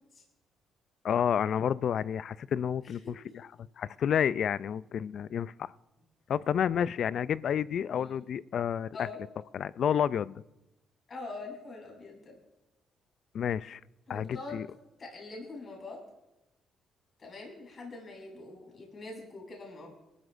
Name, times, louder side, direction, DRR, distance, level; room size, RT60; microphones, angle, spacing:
voice 1, 1.0-3.1 3.8-5.7 6.3-8.9 9.5-10.4 13.3-13.8 14.1-14.7, left 8 dB, 65° left, 19 dB, 0.3 m, -30 dB
voice 2, 2.8-3.3 7.9-8.2 8.9-9.2 11.1-12.4 14.1-14.6 15.0-16.0 17.2-19.9, left 3 dB, 45° left, -1 dB, 5.8 m, -44 dB
22.5 x 14.0 x 2.6 m, 0.98 s
cardioid pair, 90°, 0 cm